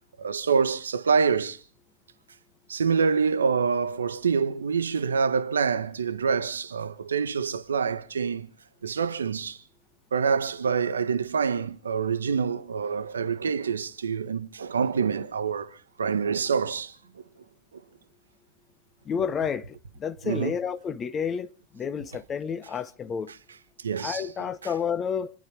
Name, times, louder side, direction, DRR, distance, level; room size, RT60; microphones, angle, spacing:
voice 1, 0.2-1.6 2.7-8.5 8.8-9.6 10.1-16.9 20.2-20.5 23.8-24.2, right 5 dB, 70° right, 1.2 m, -26 dB
voice 2, 19.0-23.3 24.0-25.3, left 7 dB, 25° left, 0.9 m, -30 dB
28.0 x 11.0 x 4.5 m
figure-of-eight pair, 90°, 0 cm